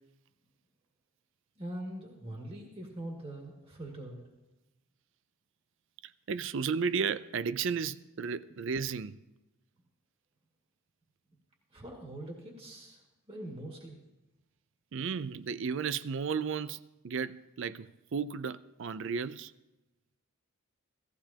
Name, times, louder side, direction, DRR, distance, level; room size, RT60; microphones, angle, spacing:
voice 1, 1.6-4.2 11.7-13.0 13.3-14.0, right 1 dB, 25° right, 2.0 m, -42 dB
voice 2, 6.0-9.2 14.9-16.8 17.0-19.5, right 6 dB, 60° right, 0.4 m, -34 dB
17.0 x 14.5 x 2.9 m
head